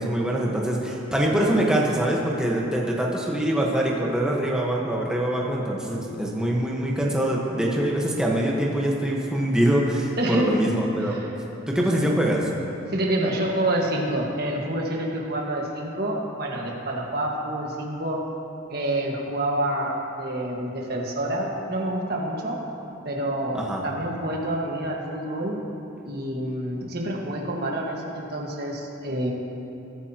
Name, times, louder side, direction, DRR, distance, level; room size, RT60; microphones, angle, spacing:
voice 1, 0.0-11.2 11.7-12.5 23.5-23.8, right 1 dB, 5° right, -3 dB, 1.3 m, -24 dB
voice 2, 10.2-10.6 11.0-11.3 11.8-11.9 12.9-18.3 18.7-22.6 23.0-25.6 26.0-29.3, right 1 dB, 50° right, -1 dB, 1.6 m, -27 dB
21.5 x 9.7 x 3.0 m, 2.8 s
head